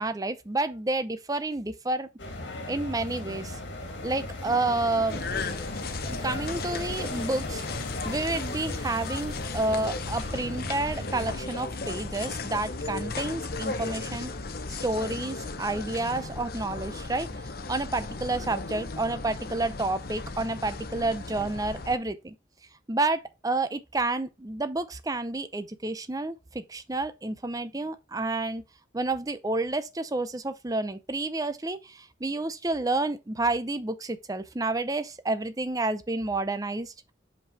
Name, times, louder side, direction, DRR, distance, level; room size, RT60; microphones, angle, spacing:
voice 1, 0.0-2.1 2.7-3.6 4.0-5.2 6.1-7.6 8.0-14.3 14.7-17.3 17.7-22.4 22.9-28.6 28.9-36.9, right 2 dB, 20° right, 0.6 m, -30 dB
sound 1, 2.2-11.3, left 1 dB, 70° left, 1.9 m, -37 dB
sound 2, 5.1-22.0, left 3 dB, 55° left, 0.8 m, -36 dB
5.4 x 5.3 x 4.8 m
head